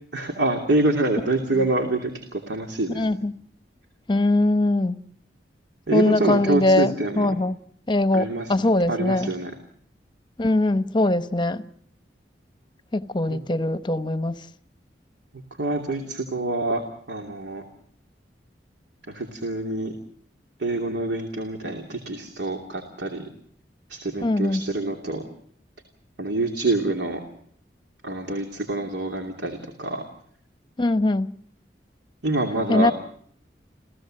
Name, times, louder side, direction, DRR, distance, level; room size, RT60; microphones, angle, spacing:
voice 1, 0.1-3.1 5.9-7.3 8.1-8.5 8.9-9.5 13.3-13.4 15.6-17.6 19.1-19.9 20.6-23.2 23.9-25.2 26.2-27.2 28.0-30.0 32.2-32.9, right 2 dB, 75° right, 2.8 m, -26 dB
voice 2, 3.0-3.3 4.1-5.0 5.9-7.6 7.9-9.3 10.4-11.6 12.9-14.3 24.2-24.6 30.8-31.3 32.7-32.9, left 2 dB, 25° left, 0.9 m, -21 dB
28.5 x 16.0 x 7.7 m
head